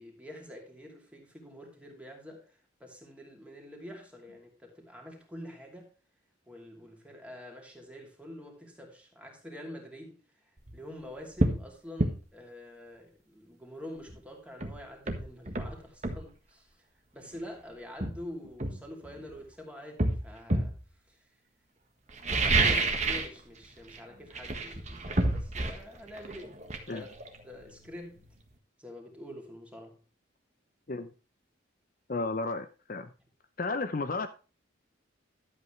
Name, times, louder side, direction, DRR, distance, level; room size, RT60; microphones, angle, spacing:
voice 1, 0.0-5.9 6.5-10.2 10.7-16.7 17.1-20.8 21.1-21.2 22.3-26.6 26.9-27.1 27.4-28.2 28.8-30.0, left 1 dB, 5° right, 2.7 m, -46 dB
sound 1, 10.6-10.8 11.4-11.6 12.0-12.2 14.1-14.2 14.6-16.3 17.3-17.5 18.0-19.4 20.0-20.8 22.1-23.4 23.6-24.0 24.3-27.9 28.2-28.3, right 2 dB, 35° right, 1.6 m, -29 dB
voice 2, 32.1-33.1 33.6-34.3, left 3 dB, 45° left, 0.7 m, -33 dB
12.5 x 8.2 x 3.3 m
head